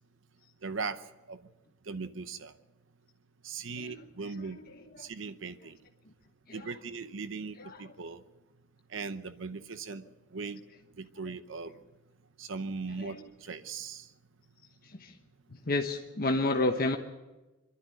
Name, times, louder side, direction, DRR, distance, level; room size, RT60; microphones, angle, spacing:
voice 1, 0.6-1.0 1.3-1.4 1.9-2.5 3.4-4.6 5.0-5.8 6.5-8.2 8.9-10.0 10.3-10.6 11.0-11.7 12.4-14.1, right 4 dB, 75° right, 12 dB, 0.8 m, -39 dB
voice 2, 4.4-5.1 6.5-6.7 7.6-7.9 13.0-13.3 14.8-15.2 15.7-17.0, left 2 dB, 50° left, 4 dB, 1.1 m, -32 dB
23.5 x 12.5 x 9.1 m, 1.1 s
head